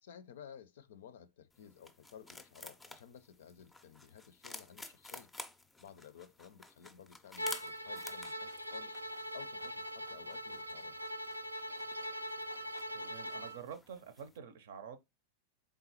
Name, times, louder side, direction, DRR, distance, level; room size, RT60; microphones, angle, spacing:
voice 1, 0.0-5.3 5.8-9.0 9.3-11.0, left 8 dB, 60° left, 0.5 m, -54 dB
sound 1, 1.5-14.4, left 2 dB, 10° left, 0.5 m, -53 dB
Bowed string instrument, 7.4-13.6, equal, 85° right, 0.3 m, -42 dB
voice 2, 12.9-15.0, right 7 dB, 60° right, 0.7 m, -48 dB
4.0 x 3.5 x 2.8 m
figure-of-eight pair, 90°, 0 cm